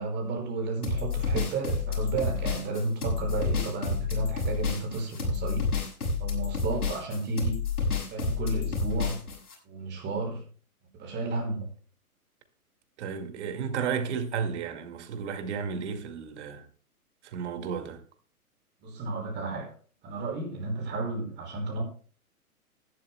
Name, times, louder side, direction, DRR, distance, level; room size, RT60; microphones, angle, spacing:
voice 1, 0.0-5.7 6.2-7.6 8.1-9.2 9.7-10.4 11.0-11.7 18.8-19.7 20.0-21.8, right 3 dB, 25° right, 5.8 m, -32 dB
sound 1, 0.8-9.5, left 4 dB, 75° left, 7.2 m, -29 dB
voice 2, 13.0-16.7 17.2-18.0, right 6 dB, 50° right, 2.2 m, -33 dB
19.5 x 12.0 x 2.3 m
hypercardioid pair, 125°, 45 cm